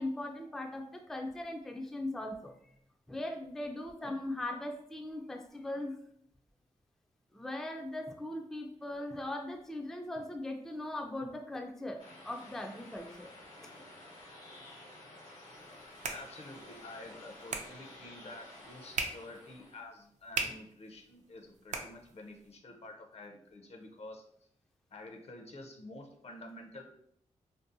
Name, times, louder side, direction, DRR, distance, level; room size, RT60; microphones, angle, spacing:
voice 1, 0.0-2.7 3.1-5.9 7.3-13.3, left 1 dB, 5° left, 3 dB, 0.3 m, -39 dB
sound 1, 12.0-19.8, left 1 dB, 90° left, 0.9 m, -52 dB
sound 2, 15.5-22.5, right 4 dB, 65° right, 0.4 m, -42 dB
voice 2, 16.1-24.2 24.9-26.8, left 2 dB, 55° left, 2 dB, 0.6 m, -49 dB
2.6 x 2.0 x 2.5 m, 0.70 s
cardioid pair, 55°, 13 cm